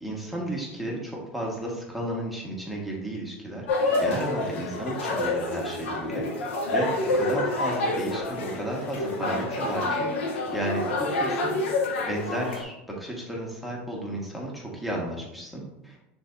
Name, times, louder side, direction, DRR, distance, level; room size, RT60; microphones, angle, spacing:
voice 1, 0.0-3.7 4.0-11.6 12.0-16.0, right 1 dB, ahead, -3 dB, 1.6 m, -33 dB
sound 1, 3.7-12.6, left 2 dB, 85° left, 1.1 m, -28 dB
10.0 x 3.5 x 2.7 m, 0.90 s
hypercardioid pair, 100°, 6 cm